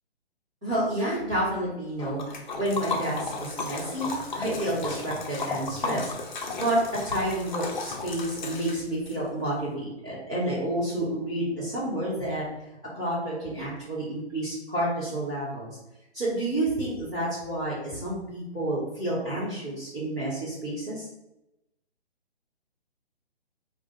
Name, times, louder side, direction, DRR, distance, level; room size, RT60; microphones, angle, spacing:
voice 1, 0.6-6.1 6.5-6.8 7.0-12.4 12.9-15.7 16.1-21.1, right 1 dB, 5° right, -12 dB, 0.4 m, -30 dB
Liquid, 2.0-9.2, left 3 dB, 45° left, 0.6 m, -34 dB
3.4 x 2.4 x 4.1 m, 0.90 s
figure-of-eight pair, 135°, 33 cm